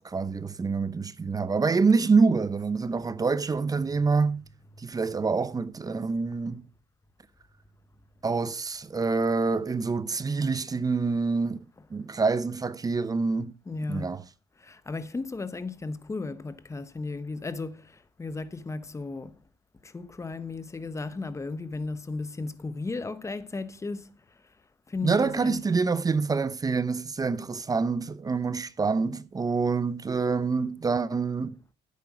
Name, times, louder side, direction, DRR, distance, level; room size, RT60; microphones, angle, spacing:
voice 1, 0.0-4.4 4.8-6.6 8.2-11.6 11.9-13.5 13.9-14.2 25.0-31.6, right 4 dB, 20° right, 0.6 m, -26 dB
voice 2, 13.7-14.1 14.6-17.8 18.2-19.3 19.8-24.1 24.9-25.6, left 3 dB, 15° left, 0.9 m, -35 dB
10.0 x 8.4 x 4.8 m
cardioid pair, 110°, 17 cm